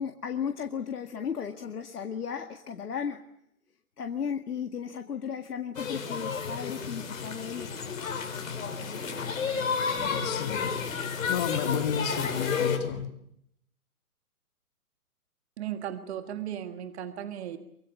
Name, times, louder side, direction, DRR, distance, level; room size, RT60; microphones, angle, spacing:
voice 1, 0.0-3.2 4.0-7.8, left 7 dB, 80° left, 2.0 m, -35 dB
sound 1, 5.7-12.8, left 6 dB, 60° left, 6.1 m, -31 dB
voice 2, 9.9-13.1, left 7 dB, 25° left, 2.4 m, -32 dB
voice 3, 15.6-17.6, right 10 dB, 45° right, 1.7 m, -36 dB
24.5 x 23.5 x 8.3 m
hypercardioid pair, 150°, 45 cm